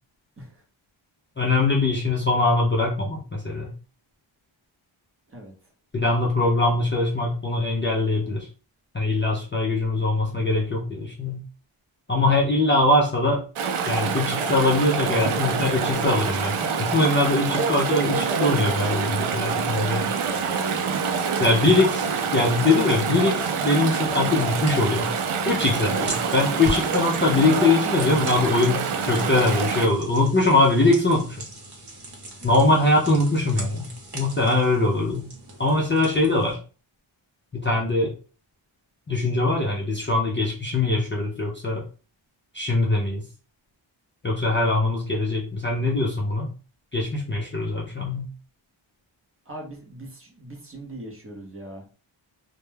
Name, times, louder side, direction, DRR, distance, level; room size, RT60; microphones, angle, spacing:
voice 1, 1.4-3.7 5.9-8.5 8.9-11.4 12.1-13.4 13.9-20.1 21.4-22.1 22.3-25.1 25.4-31.4 32.4-35.3 35.6-36.6 37.5-38.1 39.1-41.9 42.5-43.2 44.2-46.5 46.9-48.3, left 2 dB, 25° left, -2 dB, 0.4 m, -22 dB
Chatter / Stream, 13.5-29.9, right 6 dB, 90° right, 0.5 m, -26 dB
sound 1, 20.2-36.5, right 1 dB, 55° right, 0.9 m, -40 dB
voice 2, 49.5-51.8, right 1 dB, 30° right, 1 dB, 0.6 m, -40 dB
2.2 x 2.1 x 3.0 m, 0.36 s
wide cardioid pair, 135°, 49 cm